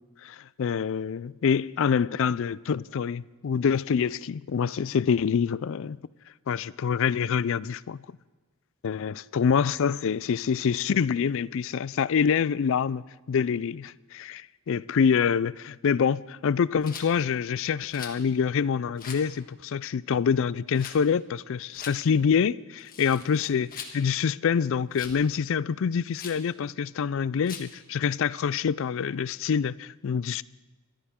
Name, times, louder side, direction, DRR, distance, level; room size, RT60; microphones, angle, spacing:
voice 1, 0.2-6.0 6.5-8.0 8.8-30.4, left 6 dB, 65° left, 0.4 m, -26 dB
Rattle, 16.8-17.1 17.9-18.2 19.0-19.3 20.7-21.0 21.7-22.0 22.8-24.0 24.9-25.2 26.1-26.4 27.4-27.7, left 6 dB, 40° left, 1.5 m, -41 dB
23.0 x 14.0 x 3.7 m
head